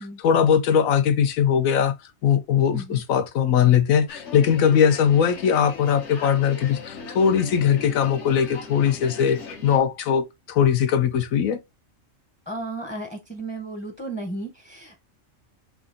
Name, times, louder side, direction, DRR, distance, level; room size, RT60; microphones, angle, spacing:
voice 1, 0.0-1.9 2.2-11.6, left 8 dB, 80° left, 1.1 m, -20 dB
sound 1, 4.1-9.8, left 4 dB, 60° left, 1.2 m, -38 dB
voice 2, 12.5-15.0, right 2 dB, 10° left, 0.6 m, -34 dB
4.8 x 2.4 x 3.8 m
omnidirectional pair, 1.4 m